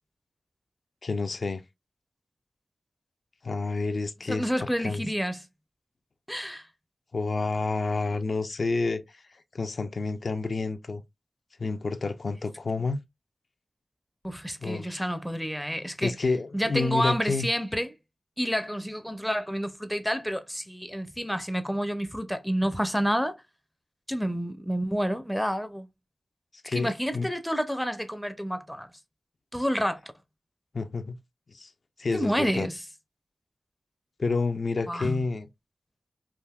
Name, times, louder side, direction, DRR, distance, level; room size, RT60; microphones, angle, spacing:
voice 1, 1.0-1.6 3.4-4.5 4.8-5.1 7.1-9.2 9.5-11.0 11.6-13.0 14.6-15.0 16.0-17.5 26.6-27.3 30.7-31.2 31.5-31.7 32.0-32.7 34.2-35.5, left 3 dB, 60° left, 0.3 m, -29 dB
voice 2, 4.3-5.5 6.3-6.6 14.2-16.1 16.5-17.9 18.4-23.4 24.1-25.9 26.7-28.9 29.5-30.1 32.1-32.8 34.9-35.2, equal, 5° left, 0.5 m, -29 dB
3.4 x 2.5 x 2.2 m
cardioid pair, 55°, 0 cm